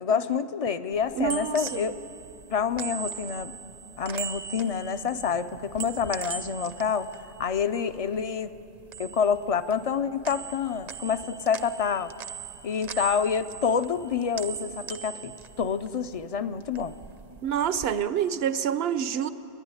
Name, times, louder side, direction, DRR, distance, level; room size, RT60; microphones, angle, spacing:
voice 1, 0.0-1.9 2.5-3.5 4.0-7.1 7.4-8.5 9.0-12.1 12.6-16.9, left 6 dB, 45° left, 12 dB, 0.5 m, -27 dB
sound 1, 1.0-8.3 8.6-10.0 10.2-16.2 16.6-17.9, right 7 dB, 45° right, 0.7 m, -40 dB
voice 2, 1.1-1.9 17.4-19.3, right 9 dB, 70° right, 13 dB, 0.9 m, -27 dB
29.5 x 11.0 x 9.7 m, 2.9 s
omnidirectional pair, 1.1 m